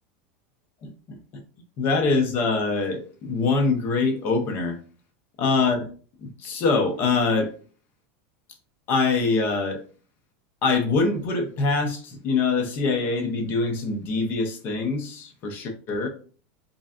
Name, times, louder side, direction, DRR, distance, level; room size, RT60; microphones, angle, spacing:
voice 1, 0.8-1.4 1.8-4.8 5.4-5.9 6.2-7.5 8.9-9.8 10.6-16.1, left 4 dB, 30° left, 0.5 m, -24 dB
3.8 x 3.2 x 2.4 m
supercardioid pair, 180°, 7 cm